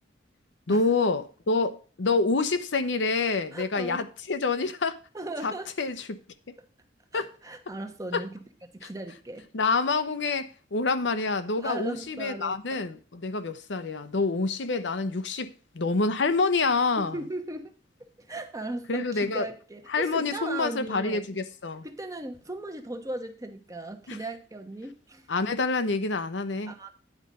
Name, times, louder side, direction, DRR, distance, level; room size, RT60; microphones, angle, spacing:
voice 1, 0.7-5.0 5.4-5.5 5.8-6.2 7.1-7.3 8.1-8.2 8.8-8.9 9.5-17.2 18.9-19.5 19.9-21.9 24.1-24.2 25.3-26.9, left 3 dB, 75° left, 0.8 m, -27 dB
voice 2, 3.5-4.1 5.1-5.7 7.1-8.4 8.7-9.5 11.6-12.8 17.0-17.7 18.0-21.2 21.8-25.3 26.7-26.9, right 2 dB, 20° right, 1.0 m, -37 dB
9.8 x 4.9 x 5.3 m
head